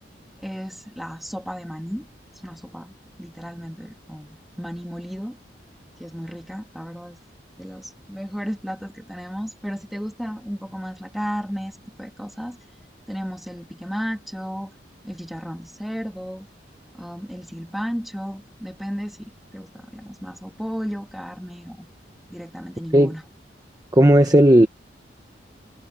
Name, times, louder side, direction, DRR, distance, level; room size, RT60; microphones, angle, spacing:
voice 1, 0.4-2.1 2.4-5.4 6.0-7.2 7.6-12.6 13.1-14.7 15.0-16.5 16.9-21.9 22.3-23.2, equal, ahead, 2.8 m, -34 dB
voice 2, 23.9-24.7, right 1 dB, 20° right, 0.9 m, -13 dB
head